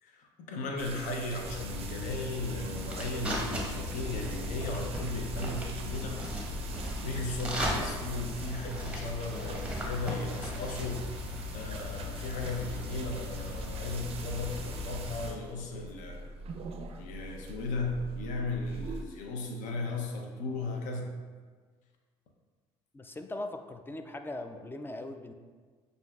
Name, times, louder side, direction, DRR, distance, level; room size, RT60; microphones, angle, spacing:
voice 1, 0.0-6.3 7.0-11.1 11.5-16.3 17.0-21.1, left 2 dB, 70° left, 2 dB, 0.7 m, -36 dB
sound 1, 0.8-19.0, right 3 dB, 45° right, 0.4 m, -44 dB
sound 2, 1.4-15.3, left 1 dB, 10° right, 1.0 m, -37 dB
voice 2, 22.9-25.3, left 2 dB, 15° left, 7 dB, 0.4 m, -40 dB
6.6 x 2.6 x 2.3 m, 1.5 s
hypercardioid pair, 65°, 14 cm